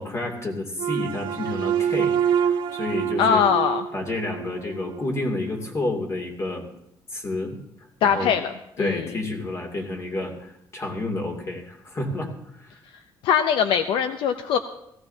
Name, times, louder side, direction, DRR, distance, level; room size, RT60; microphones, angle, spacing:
voice 1, 0.0-3.5 3.9-6.7 7.1-7.6 8.0-8.3 8.8-12.8, left 2 dB, 35° left, 1 dB, 2.7 m, -30 dB
sound 1, 0.8-5.1, right 8 dB, 70° right, 0.6 m, -26 dB
voice 2, 3.2-3.8 8.0-9.1 13.2-14.6, left 7 dB, 75° left, 9 dB, 0.6 m, -21 dB
17.5 x 15.5 x 2.8 m, 0.78 s
cardioid pair, 110°, 9 cm